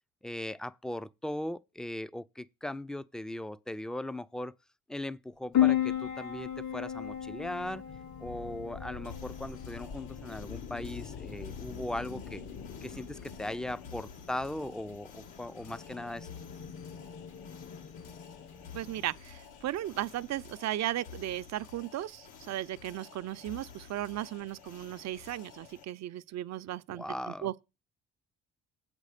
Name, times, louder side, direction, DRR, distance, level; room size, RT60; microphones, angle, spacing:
voice 1, 0.2-4.5 4.9-7.8 8.2-12.4 12.8-16.3 26.9-27.5, left 1 dB, ahead, 0.5 m, -38 dB
Piano, 5.5-20.5, left 12 dB, 65° left, 3.4 m, -36 dB
sound 1, 5.8-19.1, left 6 dB, 45° left, 1.0 m, -47 dB
sound 2, 9.0-25.8, left 7 dB, 80° left, 2.0 m, -52 dB
voice 2, 18.7-27.6, right 13 dB, 60° right, 0.7 m, -36 dB
8.1 x 5.3 x 6.6 m
supercardioid pair, 75°, 31 cm